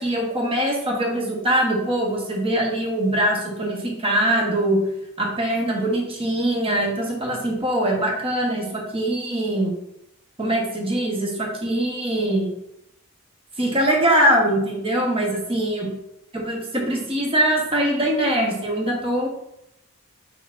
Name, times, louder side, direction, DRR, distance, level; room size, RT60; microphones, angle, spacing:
voice 1, 0.0-4.8 5.2-9.7 10.4-12.5 13.6-15.9 16.4-19.3, right 1 dB, 25° right, -1 dB, 0.9 m, -22 dB
4.5 x 4.0 x 2.5 m, 0.79 s
head